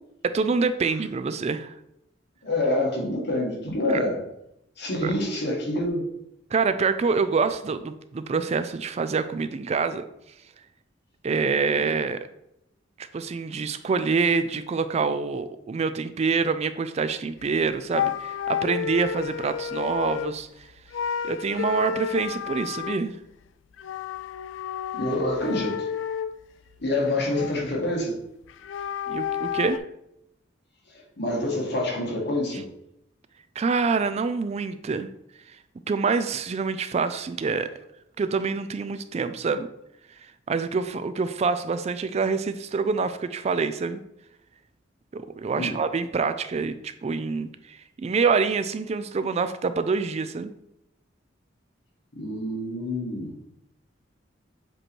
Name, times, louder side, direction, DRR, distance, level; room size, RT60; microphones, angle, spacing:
voice 1, 0.2-1.7 5.0-5.1 6.5-10.1 11.2-12.3 13.0-20.7 21.2-23.1 29.1-29.8 33.6-35.1 35.5-35.6 35.9-37.7 38.2-39.7 40.5-44.0 45.1-50.5, right 4 dB, 35° right, 11 dB, 0.3 m, -26 dB
voice 2, 2.4-4.2 4.8-6.0 11.7-11.8 24.9-25.9 26.8-28.1 31.2-32.6 45.6-45.8 52.2-53.4, left 1 dB, 60° left, -2 dB, 1.8 m, -26 dB
sound 1, 17.4-17.6 17.9-20.5 20.9-23.0 23.8-26.4 26.8-27.8 28.5-29.8, left 9 dB, 80° left, 0.3 m, -31 dB
7.6 x 3.1 x 4.4 m, 0.80 s
head